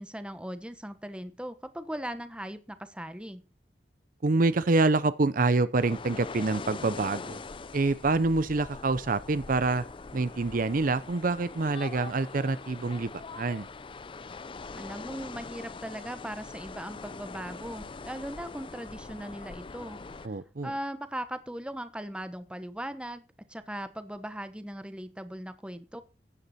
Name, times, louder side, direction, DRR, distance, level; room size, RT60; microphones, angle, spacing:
voice 1, 0.0-3.4 14.7-20.4 20.6-23.2 23.5-26.0, right 1 dB, 5° right, 1.0 m, -39 dB
voice 2, 4.2-7.4 7.7-9.8 10.1-13.7 20.2-20.7, right 3 dB, 50° right, 0.6 m, -26 dB
sound 1, 5.8-20.3, left 4 dB, 30° left, 0.5 m, -42 dB
14.5 x 9.8 x 4.2 m
head